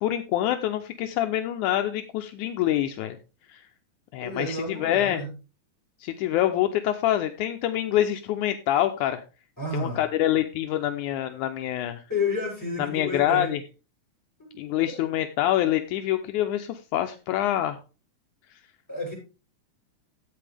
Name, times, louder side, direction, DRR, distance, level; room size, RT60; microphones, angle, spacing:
voice 1, 0.0-3.2 3.5-3.7 4.1-5.2 6.0-9.2 9.7-12.0 12.8-13.6 14.6-17.8 18.5-18.6, left 12 dB, 80° left, 6 dB, 2.1 m, -26 dB
voice 2, 4.2-5.3 9.6-10.0 12.1-13.5 14.4-14.5 14.8-15.0 18.9-19.1, left 2 dB, 5° left, -3 dB, 7.7 m, -31 dB
14.5 x 8.5 x 3.4 m, 0.33 s
omnidirectional pair, 3.6 m